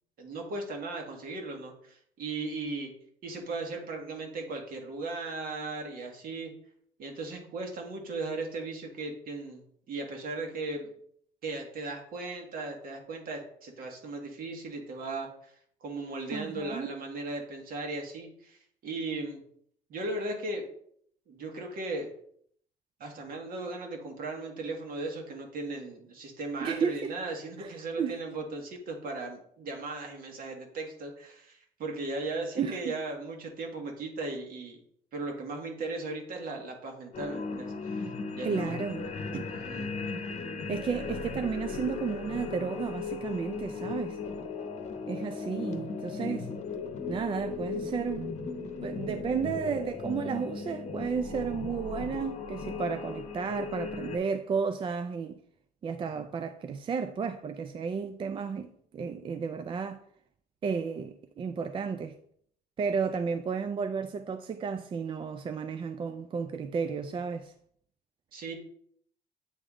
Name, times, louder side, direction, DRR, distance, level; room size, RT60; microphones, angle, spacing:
voice 1, 0.2-2.9 3.2-6.5 7.0-10.9 11.4-15.5 15.8-19.4 19.9-20.6 21.3-22.1 23.0-34.8 35.1-38.8 39.5-39.9 68.3-68.6, right 2 dB, 60° right, 1.6 m, -37 dB
voice 2, 16.3-16.9 26.6-27.1 27.6-28.2 32.6-32.9 38.4-39.1 39.3-39.5 40.7-44.2 45.1-46.5 47.1-48.3 48.8-55.4 55.8-60.0 60.6-62.2 62.8-67.5, right 6 dB, 30° right, 0.4 m, -33 dB
sound 1, 37.1-54.2, left 4 dB, 40° left, 0.9 m, -37 dB
8.5 x 3.5 x 3.6 m
cardioid pair, 110°, 17 cm